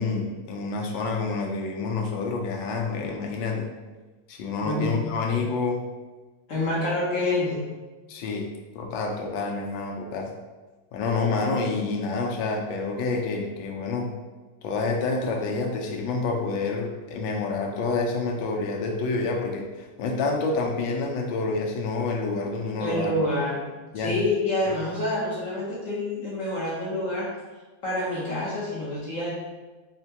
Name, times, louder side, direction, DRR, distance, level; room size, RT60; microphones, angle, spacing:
voice 1, 0.0-3.7 4.3-5.8 8.1-10.3 10.9-14.1 14.6-23.1 23.9-24.2, left 3 dB, 80° left, 2 dB, 1.3 m, -28 dB
voice 2, 6.5-7.6 22.8-23.7 23.9-27.3 27.8-29.3, left 1 dB, 55° left, -6 dB, 0.9 m, -27 dB
4.4 x 2.1 x 2.7 m, 1.3 s
omnidirectional pair, 2.1 m